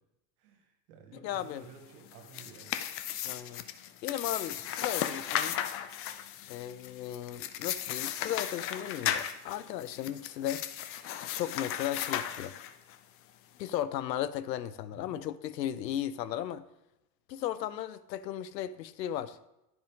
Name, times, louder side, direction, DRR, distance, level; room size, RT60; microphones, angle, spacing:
voice 1, 0.4-2.7 14.9-15.2, right 5 dB, 70° right, 1.6 m, -53 dB
voice 2, 1.1-1.7 3.2-3.6 4.0-5.6 6.5-10.6 11.3-12.6 13.6-16.6 17.3-19.4, left 11 dB, 85° left, 0.6 m, -36 dB
sound 1, 2.1-13.0, left 11 dB, 30° left, 0.4 m, -36 dB
9.7 x 5.2 x 3.5 m
hypercardioid pair, 95°, 49 cm